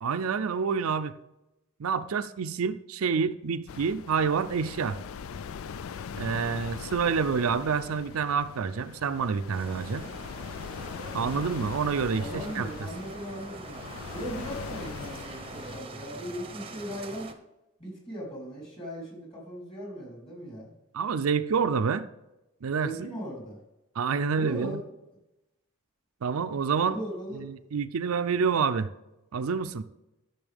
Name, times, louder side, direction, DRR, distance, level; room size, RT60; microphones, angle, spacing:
voice 1, 0.0-1.1 1.8-5.0 6.2-10.1 11.1-12.7 20.9-22.1 22.6-23.1 24.0-24.8 26.2-27.0 27.3-28.9 29.3-29.8, right 5 dB, 85° right, 11 dB, 0.5 m, -28 dB
sound 1, 3.7-15.8, left 6 dB, 75° left, 0.4 m, -41 dB
sound 2, 9.5-17.3, right 3 dB, 25° right, 0.7 m, -43 dB
voice 2, 12.1-17.3 17.8-20.7 21.8-21.9 22.6-23.6 24.3-24.8 26.8-27.4, equal, 25° left, -3 dB, 3.5 m, -38 dB
12.5 x 6.9 x 3.5 m, 0.94 s
head